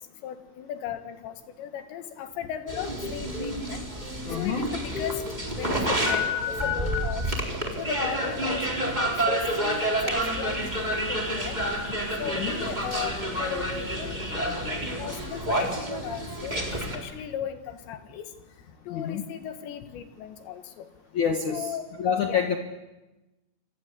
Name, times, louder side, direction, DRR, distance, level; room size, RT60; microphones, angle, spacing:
voice 1, 0.2-3.8 4.4-5.2 5.6-7.3 7.8-11.6 12.2-16.6 16.9-18.3 18.9-20.9 21.5-21.9 22.3-22.4, left 9 dB, 70° left, 8 dB, 3.7 m, -37 dB
sound 1, 2.7-3.6 4.0-6.2 6.5-7.1, left 4 dB, 10° left, 6.1 m, -37 dB
sound 2, 2.7-17.0, equal, 10° right, 3.4 m, -29 dB
voice 2, 4.2-4.7 12.2-12.5 18.9-19.2 21.1-21.7 22.0-22.6, left 7 dB, 55° left, 3 dB, 2.4 m, -27 dB
27.5 x 24.0 x 8.4 m, 1.0 s
omnidirectional pair, 5.5 m